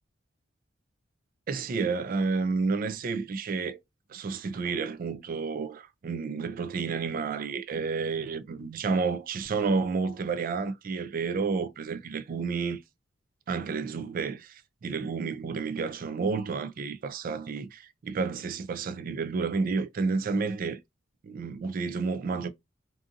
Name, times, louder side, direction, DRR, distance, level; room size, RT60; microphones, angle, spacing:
voice 1, 1.5-3.8 4.1-12.8 13.5-20.8 21.2-22.5, right 4 dB, 45° right, 0.3 m, -30 dB
2.6 x 2.5 x 2.5 m
head